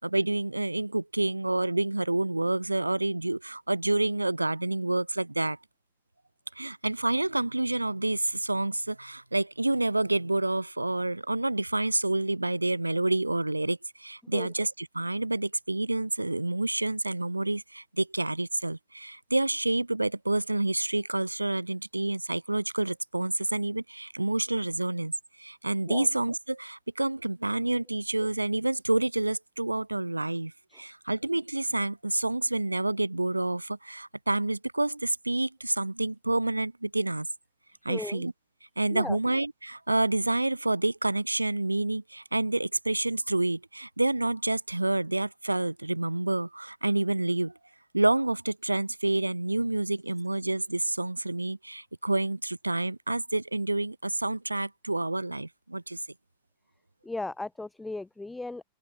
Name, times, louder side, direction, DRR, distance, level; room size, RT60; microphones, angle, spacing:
voice 1, 0.0-5.6 6.6-25.1 25.4-37.3 37.8-38.3 38.8-47.5 47.9-56.0, right 2 dB, 85° right, 0.5 m, -28 dB
voice 2, 37.9-38.3 38.9-39.2 57.0-58.6, left 2 dB, 10° left, 0.5 m, -36 dB
open air
figure-of-eight pair, 90°, 0 cm